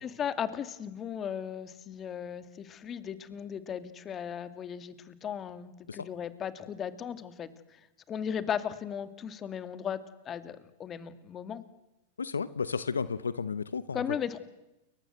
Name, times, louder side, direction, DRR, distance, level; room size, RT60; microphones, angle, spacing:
voice 1, 0.0-7.5 8.1-10.0 10.2-11.6 13.9-14.4, left 8 dB, 30° left, 13 dB, 2.5 m, -36 dB
voice 2, 12.2-14.0, left 5 dB, 90° left, 17 dB, 0.9 m, -33 dB
30.0 x 23.0 x 7.9 m, 0.95 s
hypercardioid pair, 100°, 0 cm